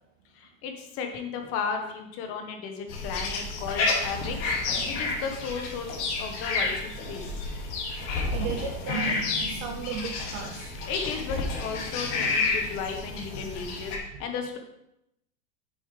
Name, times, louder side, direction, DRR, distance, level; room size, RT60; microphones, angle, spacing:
voice 1, 0.3-4.5 4.8-7.5 10.9-14.6, left 6 dB, 30° left, 4 dB, 1.2 m, -34 dB
sound 1, 2.9-14.0, left 3 dB, 55° left, 2.3 m, -30 dB
voice 2, 8.3-9.2 9.5-10.7, right 5 dB, 25° right, 2 dB, 0.4 m, -35 dB
8.3 x 7.4 x 3.3 m, 0.82 s
supercardioid pair, 160°, 43 cm